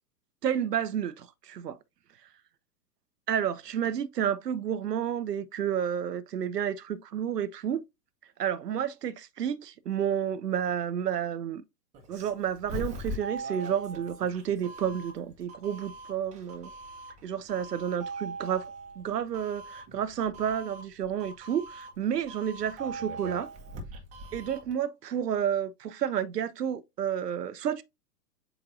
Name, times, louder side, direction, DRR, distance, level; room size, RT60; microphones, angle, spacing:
voice 1, 0.4-1.8 3.3-7.8 8.4-11.6 12.1-16.7 17.2-18.7 19.0-23.5 24.3-27.8, right 9 dB, 75° right, 0.6 m, -30 dB
Doorbell, 11.9-24.7, right 2 dB, 15° right, 0.8 m, -41 dB
7.6 x 2.6 x 2.5 m
figure-of-eight pair, 105°, 49 cm